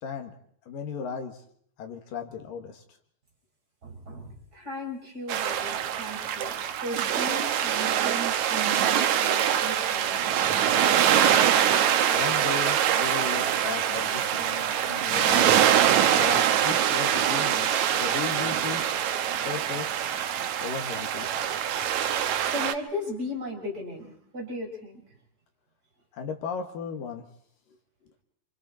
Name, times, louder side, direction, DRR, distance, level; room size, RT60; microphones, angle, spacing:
voice 1, 0.0-0.3 0.7-1.4 1.8-2.8 12.1-15.6 16.1-18.9 19.5-20.0 20.6-21.3 26.1-27.3, left 6 dB, 75° left, 4 dB, 3.4 m, -36 dB
voice 2, 3.8-10.7 22.5-25.0, left 1 dB, 25° right, 0 dB, 5.6 m, -37 dB
sound 1, 5.3-22.7, right 9 dB, 65° right, 2.1 m, -24 dB
28.0 x 26.0 x 4.3 m, 0.63 s
omnidirectional pair, 4.0 m